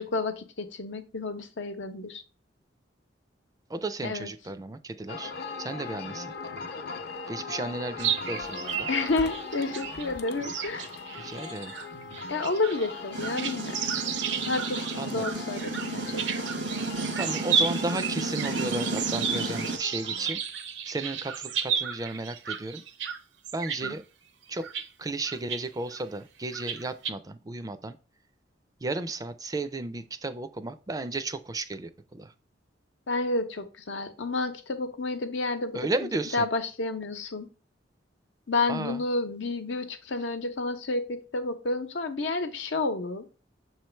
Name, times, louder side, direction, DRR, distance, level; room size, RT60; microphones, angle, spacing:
voice 1, 0.0-2.2 4.0-4.3 8.9-10.9 12.3-13.9 14.4-16.5 23.8-23.9 33.1-37.5 38.5-43.3, left 3 dB, 85° left, 7 dB, 0.9 m, -30 dB
voice 2, 3.7-5.3 5.6-6.3 7.3-8.9 11.2-11.7 15.0-15.2 17.1-20.4 20.9-22.8 23.5-24.0 24.5-24.7 25.0-28.0 28.8-32.3 35.7-36.5 38.7-39.0, right 2 dB, 20° right, 12 dB, 0.4 m, -34 dB
sound 1, 5.1-20.3, left 4 dB, 60° left, 0.8 m, -40 dB
sound 2, 8.0-23.2 23.4-23.9 24.5-24.9 25.2-25.6 25.9-26.0 26.5-27.1, right 7 dB, 75° right, 0.7 m, -33 dB
sound 3, 13.1-19.8, right 2 dB, 90° right, 1.2 m, -33 dB
6.9 x 3.1 x 4.4 m, 0.35 s
head